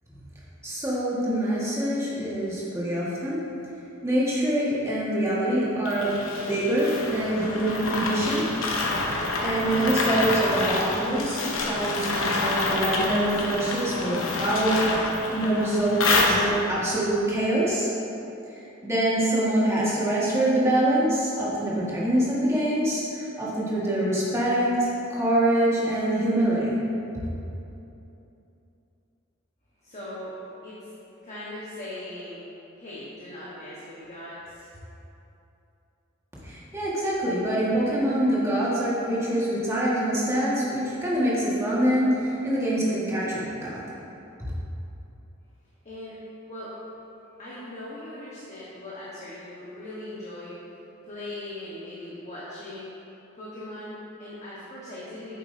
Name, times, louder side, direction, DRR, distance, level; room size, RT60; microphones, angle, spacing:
voice 1, 0.6-3.4 4.0-6.2 6.5-8.5 9.4-17.9 18.8-26.8 36.4-43.8, right 1 dB, 15° right, -7 dB, 1.6 m, -25 dB
sound 1, 5.9-16.8, left 2 dB, 80° left, 0.9 m, -27 dB
voice 2, 29.8-30.9 31.2-32.4 32.8-34.8 45.8-46.2 46.5-46.8 47.4-50.8 51.0-52.9 53.3-55.4, left 1 dB, 35° left, -9 dB, 1.2 m, -39 dB
9.0 x 7.3 x 2.7 m, 2.9 s
head